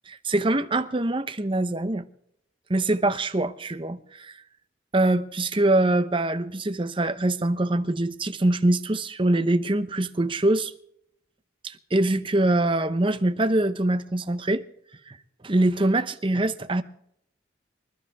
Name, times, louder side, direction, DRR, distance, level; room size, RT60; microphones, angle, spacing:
voice 1, 0.1-2.0 2.7-4.4 4.9-10.7 11.6-14.6 15.1-15.2 15.4-16.8, right 1 dB, 25° right, 0.8 m, -24 dB
25.5 x 12.0 x 3.5 m
head